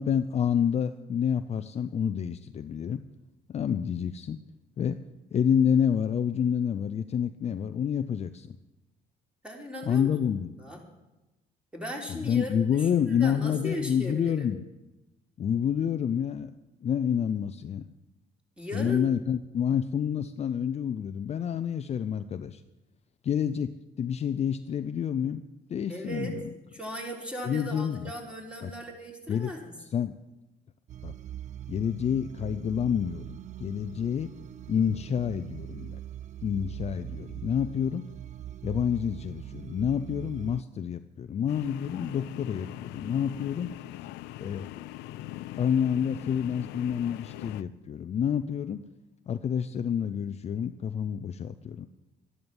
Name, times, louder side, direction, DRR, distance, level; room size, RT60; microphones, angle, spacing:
voice 1, 0.0-3.0 3.5-4.4 4.8-5.0 5.3-8.6 9.9-10.5 12.1-14.6 15.4-16.5 16.8-17.8 18.7-22.6 23.2-23.7 24.0-25.4 25.7-26.4 27.4-28.1 28.6-28.7 29.3-29.5 29.9-30.1 31.0-31.1 31.7-34.3 34.7-36.0 36.4-38.0 38.6-43.7 44.4-48.8 49.3-51.9, left 8 dB, 40° left, 10 dB, 0.6 m, -28 dB
voice 2, 9.4-10.1 10.6-10.8 11.7-14.5 18.6-19.1 25.9-26.4 26.7-29.7, equal, 5° right, 0 dB, 3.6 m, -37 dB
sound 1, 30.9-40.6, right 11 dB, 45° right, 0.5 m, -42 dB
sound 2, 41.5-47.6, left 15 dB, 90° left, 0.5 m, -41 dB
12.5 x 11.0 x 7.2 m, 1.0 s
cardioid pair, 110°, 17 cm